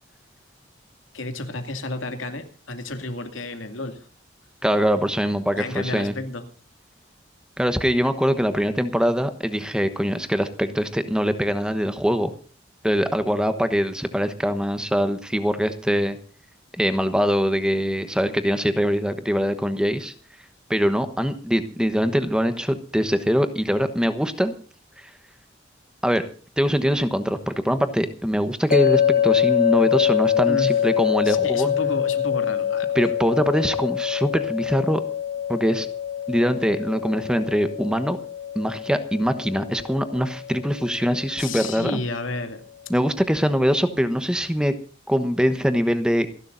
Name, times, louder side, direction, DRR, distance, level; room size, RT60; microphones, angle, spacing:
voice 1, 1.1-4.1 5.6-6.4 30.5-30.7 31.2-33.0 41.4-42.6, left 2 dB, 90° left, 7 dB, 2.5 m, -31 dB
voice 2, 4.6-6.1 7.6-12.3 12.8-16.2 16.7-20.1 20.7-24.5 25.0-25.1 26.0-26.2 26.6-31.7 32.9-35.0 35.5-35.9 36.3-38.2 38.5-42.0 42.9-44.7 45.1-46.3, equal, 5° right, 10 dB, 1.1 m, -23 dB
sound 1, 28.7-41.8, left 9 dB, 45° left, 2.0 m, -25 dB
28.0 x 11.5 x 2.6 m, 0.39 s
head